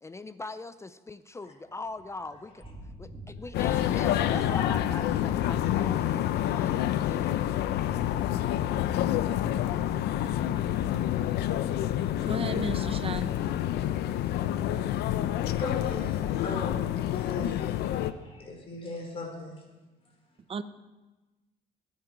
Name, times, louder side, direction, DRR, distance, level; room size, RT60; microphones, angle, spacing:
voice 1, 0.0-2.6 3.0-7.3, left 2 dB, 15° left, 13 dB, 0.5 m, -41 dB
Thunder / Rain, 1.7-11.2, right 1 dB, 15° right, 3.4 m, -51 dB
sound 1, 3.5-18.1, left 12 dB, 75° left, 0.7 m, -28 dB
voice 2, 12.2-13.7 20.5-20.6, right 5 dB, 35° right, 13 dB, 0.8 m, -36 dB
voice 3, 15.5-19.6, left 2 dB, 35° left, 1 dB, 4.6 m, -39 dB
21.0 x 9.8 x 4.7 m, 1.1 s
cardioid pair, 110°, 17 cm